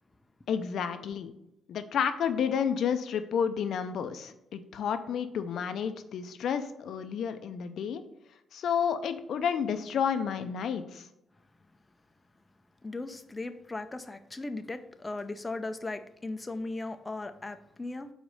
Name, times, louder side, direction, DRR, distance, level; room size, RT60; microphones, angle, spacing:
voice 1, 0.5-1.3 1.7-8.0 8.5-11.1, left 7 dB, 70° left, 9 dB, 0.5 m, -31 dB
voice 2, 12.8-18.1, left 2 dB, 20° left, 8 dB, 0.4 m, -37 dB
4.8 x 4.0 x 5.3 m, 0.84 s
cardioid pair, 80°, 0 cm